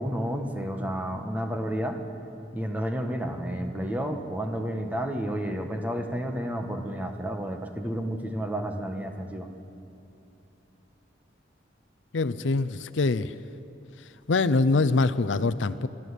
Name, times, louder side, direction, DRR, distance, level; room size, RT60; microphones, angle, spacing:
voice 1, 0.0-2.0 2.5-9.5, equal, 10° right, 4 dB, 1.4 m, -31 dB
voice 2, 12.1-13.3 14.3-15.9, left 3 dB, 80° left, 13 dB, 0.6 m, -24 dB
24.5 x 13.5 x 8.3 m, 2.9 s
head